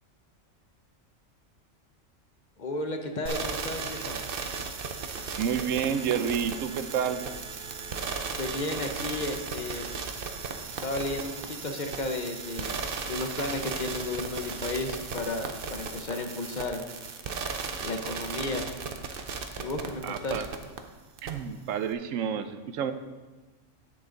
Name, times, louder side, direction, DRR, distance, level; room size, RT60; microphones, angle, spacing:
voice 1, 2.6-4.2 8.4-9.9 10.8-16.8 17.8-18.7 19.6-20.4, left 2 dB, 40° left, 5 dB, 0.9 m, -33 dB
sound 1, 3.3-20.8 21.2-21.3, right 5 dB, 50° right, 0.8 m, -36 dB
voice 2, 5.4-7.2 20.0-20.5 21.2-22.9, right 8 dB, 85° right, 10 dB, 1.0 m, -29 dB
10.5 x 7.9 x 3.9 m, 1.3 s
omnidirectional pair, 1.3 m